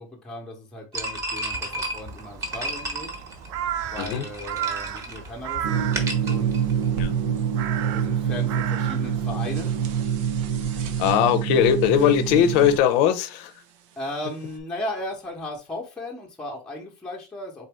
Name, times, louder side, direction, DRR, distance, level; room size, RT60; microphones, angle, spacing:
voice 1, 0.0-3.1 3.9-5.9 6.2-6.6 7.8-9.7 14.0-17.7, left 1 dB, 5° left, 0.9 m, -36 dB
sound 1, 0.9-7.2, right 1 dB, 20° right, 1.0 m, -33 dB
Crow, 1.6-10.1, right 11 dB, 70° right, 0.5 m, -35 dB
sound 2, 5.6-12.8, right 8 dB, 90° right, 0.9 m, -26 dB
voice 2, 11.0-13.5, left 9 dB, 55° left, 0.7 m, -20 dB
3.9 x 3.9 x 3.4 m
cardioid pair, 170°, 16 cm